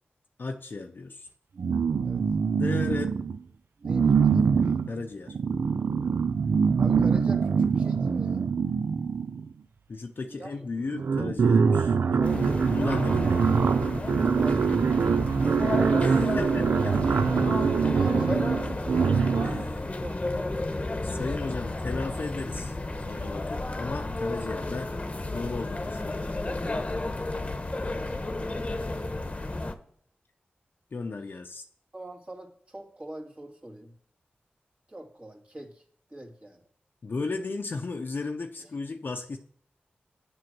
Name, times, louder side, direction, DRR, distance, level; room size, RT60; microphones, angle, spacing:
voice 1, 0.4-1.3 2.5-3.1 4.9-5.4 9.9-13.6 16.0-17.2 19.4-19.8 21.0-22.8 23.0-24.9 25.3-26.3 30.9-31.6 37.0-39.4, left 3 dB, 65° left, 4 dB, 0.6 m, -35 dB
sound 1, 1.6-3.4 3.8-9.5 10.5-10.6 10.8-19.7, right 5 dB, 75° right, 0.3 m, -24 dB
voice 2, 3.8-4.6 6.7-8.5 10.4-10.6 12.0-12.7 14.2-15.1 16.4-16.7 17.8-18.9 20.0-20.5 28.0-28.5 28.9-29.3 31.9-33.9 34.9-35.8 36.1-36.6, right 1 dB, 30° right, -1 dB, 2.3 m, -43 dB
sound 2, 12.2-29.7, left 2 dB, 35° left, 1.0 m, -32 dB
7.7 x 6.2 x 6.0 m, 0.62 s
cardioid pair, 55°, 4 cm